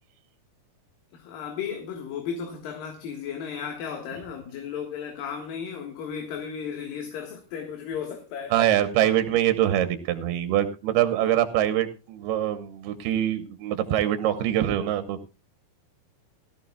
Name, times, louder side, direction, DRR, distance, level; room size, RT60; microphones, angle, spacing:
voice 1, 1.1-8.5, left 7 dB, 65° left, 3 dB, 3.1 m, -34 dB
voice 2, 8.5-15.3, right 12 dB, 90° right, 10 dB, 2.9 m, -24 dB
17.5 x 14.0 x 2.3 m, 0.30 s
omnidirectional pair, 4.5 m